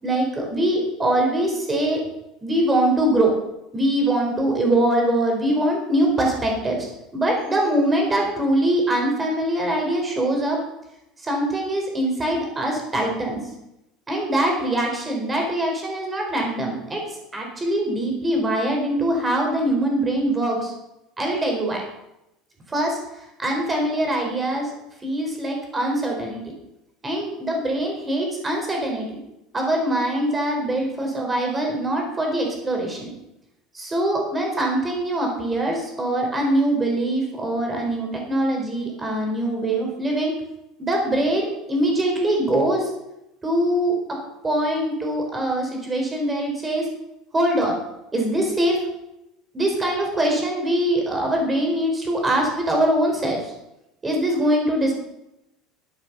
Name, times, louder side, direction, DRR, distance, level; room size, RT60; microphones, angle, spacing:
voice 1, 0.0-2.0 2.4-3.3 3.7-10.6 11.2-13.4 14.1-17.0 17.3-20.7 21.2-21.8 22.7-23.0 23.4-24.7 25.0-26.4 27.0-29.2 29.5-33.1 33.7-40.3 40.8-42.9 43.4-44.0 44.4-46.9 47.3-47.7 48.1-48.8 49.5-53.5 54.0-54.9, right 1 dB, 15° right, 1 dB, 4.6 m, -23 dB
13.0 x 8.9 x 7.0 m, 0.87 s
cardioid pair, 140°, 0 cm